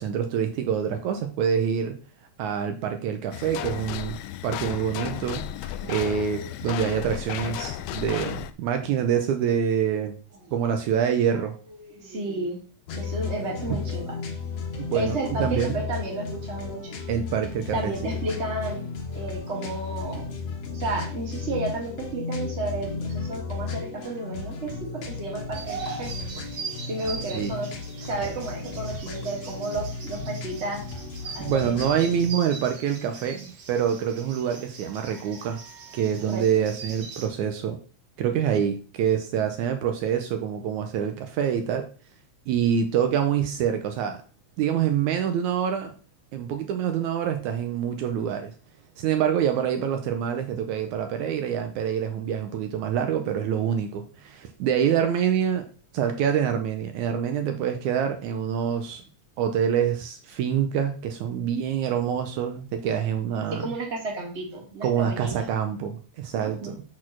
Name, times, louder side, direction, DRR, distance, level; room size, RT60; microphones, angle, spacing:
voice 1, 0.0-2.0 2.4-4.2 4.4-10.2 10.5-11.5 14.8-15.8 17.1-17.9 27.3-27.5 31.4-35.6 35.9-37.8 38.2-41.9 42.5-44.2 44.6-45.9 46.3-48.5 49.0-55.6 55.9-59.0 59.4-63.7 64.8-66.8, right 8 dB, 75° right, 6 dB, 2.0 m, -26 dB
sound 1, 3.3-8.5, left 12 dB, 90° left, 1.5 m, -34 dB
voice 2, 11.8-12.6 12.9-14.2 14.7-17.0 17.7-18.8 19.1-20.3 20.7-26.1 26.9-27.7 28.0-30.8 31.3-32.1 36.3-36.7 63.5-65.5 66.3-66.8, right 2 dB, 25° right, -1 dB, 2.0 m, -32 dB
sound 2, 12.9-32.3, left 4 dB, 60° left, 2.1 m, -34 dB
sound 3, 25.5-37.3, right 4 dB, 50° right, 1.5 m, -41 dB
6.5 x 4.3 x 5.9 m, 0.38 s
omnidirectional pair, 3.6 m